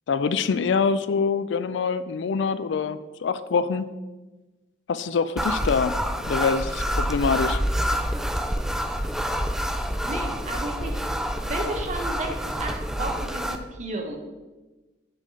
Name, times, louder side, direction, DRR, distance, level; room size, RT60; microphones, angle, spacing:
voice 1, 0.1-3.9 4.9-6.0 6.3-7.6, left 5 dB, 85° left, 13 dB, 0.4 m, -25 dB
sound 1, 5.4-13.6, equal, 5° right, 0.3 m, -27 dB
voice 2, 10.0-14.2, right 1 dB, 40° right, 2 dB, 1.0 m, -33 dB
7.5 x 4.8 x 3.8 m, 1.2 s
head